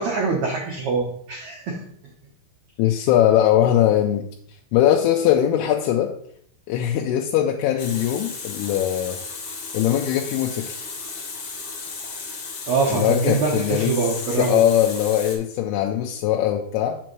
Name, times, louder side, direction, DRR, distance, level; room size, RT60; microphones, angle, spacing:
voice 1, 0.0-1.9 12.7-14.6, right 4 dB, 80° right, -1 dB, 1.6 m, -24 dB
voice 2, 2.8-4.3 4.7-6.1 6.7-9.2 9.7-10.8 12.9-17.0, left 11 dB, 80° left, 2 dB, 2.5 m, -21 dB
Water tap faucet, 7.8-15.4, left 4 dB, 55° left, 2.0 m, -34 dB
7.6 x 6.0 x 3.0 m, 0.66 s
omnidirectional pair, 4.7 m